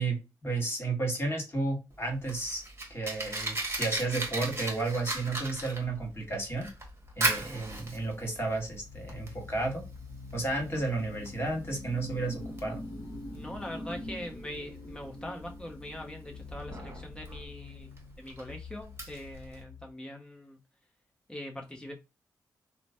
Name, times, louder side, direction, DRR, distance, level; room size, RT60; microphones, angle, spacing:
voice 1, 0.0-2.6 2.9-6.7 7.2-9.8 10.3-12.8, right 2 dB, 30° left, 1.6 m, -32 dB
Fire, 1.9-19.6, right 2 dB, 35° right, 1.1 m, -38 dB
sound 1, 6.4-19.9, left 3 dB, 65° left, 0.9 m, -45 dB
voice 2, 13.3-20.6 21.3-21.9, left 1 dB, 10° left, 0.9 m, -42 dB
3.0 x 2.2 x 2.6 m
supercardioid pair, 45°, 8 cm